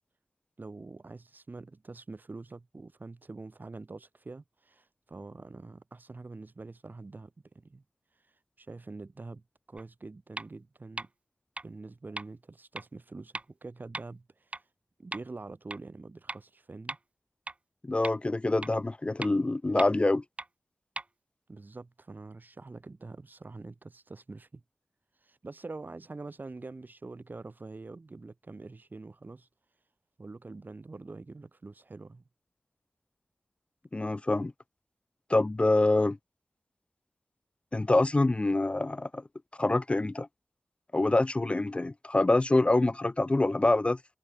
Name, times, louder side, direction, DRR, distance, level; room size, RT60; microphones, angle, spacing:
voice 1, 0.6-7.8 8.6-11.1 11.6-14.6 15.0-17.0 21.5-24.6 25.2-29.5 30.2-32.2, right 3 dB, 55° right, 4.0 m, -45 dB
sound 1, 9.8-9.9 10.4-10.5 11.0-11.1 11.6-11.7 12.2-12.3 12.8-12.9 13.4-13.5 13.9-14.0 14.5-14.6 15.1-15.2 15.7-15.8 16.3-16.4 16.9-17.0 17.5-17.6 18.0-18.1 18.6-18.7 19.2-19.3 19.8-19.9 20.4-20.5 21.0-21.1, right 2 dB, 35° right, 0.5 m, -37 dB
voice 2, 17.8-20.2 33.9-34.5 35.3-36.2 37.7-39.2 39.6-40.3 40.9-44.0, left 2 dB, 30° left, 0.4 m, -25 dB
cardioid pair, 45°, 4 cm